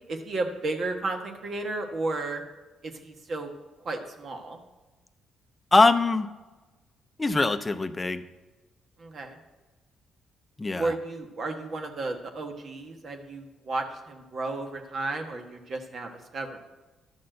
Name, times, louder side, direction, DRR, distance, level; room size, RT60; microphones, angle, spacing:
voice 1, 0.1-2.4 2.8-3.5 3.8-4.6 9.0-9.4 10.8-16.6, right 2 dB, 50° right, 4 dB, 1.1 m, -33 dB
voice 2, 5.7-6.3 7.2-8.2 10.6-10.9, left 3 dB, 20° left, 9 dB, 0.6 m, -22 dB
11.5 x 4.3 x 7.7 m, 1.2 s
cardioid pair, 90°, 0 cm